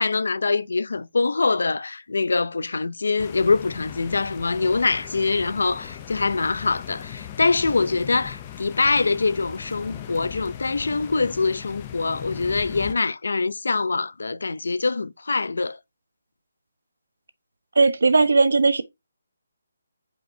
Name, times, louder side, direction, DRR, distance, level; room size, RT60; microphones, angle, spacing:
voice 1, 0.0-15.8, left 3 dB, 75° left, 0.6 m, -24 dB
sound 1, 3.2-12.9, left 10 dB, 15° left, 0.6 m, -39 dB
voice 2, 17.8-18.8, right 3 dB, 80° right, 1.0 m, -17 dB
7.8 x 5.1 x 2.7 m
hypercardioid pair, 180°, 0 cm